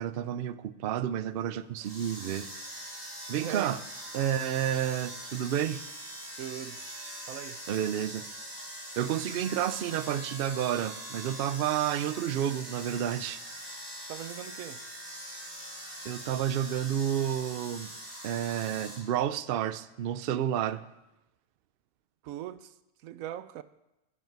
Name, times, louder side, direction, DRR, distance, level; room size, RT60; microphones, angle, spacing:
voice 1, 0.0-2.5 3.3-3.8 4.1-5.8 7.7-8.3 9.0-13.4 16.0-17.9 18.2-20.8, right 10 dB, 60° right, 0.6 m, -30 dB
sound 1, 1.8-19.0, equal, 20° right, 3.7 m, -42 dB
voice 2, 3.3-3.7 6.4-6.8 7.3-7.7 14.1-14.9 22.2-23.6, right 12 dB, 90° right, 1.0 m, -40 dB
16.0 x 8.1 x 4.6 m
omnidirectional pair, 1.4 m